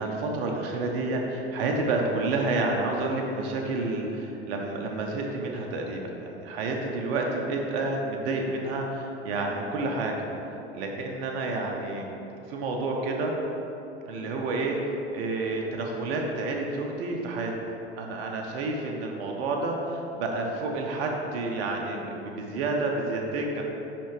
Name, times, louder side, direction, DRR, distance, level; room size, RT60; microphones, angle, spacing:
voice 1, 0.0-10.3 10.7-12.1 12.5-13.3 14.1-14.8 15.1-23.6, right 2 dB, 60° right, 1 dB, 0.8 m, -29 dB
9.9 x 3.4 x 3.2 m, 3.0 s
figure-of-eight pair, 75°, 32 cm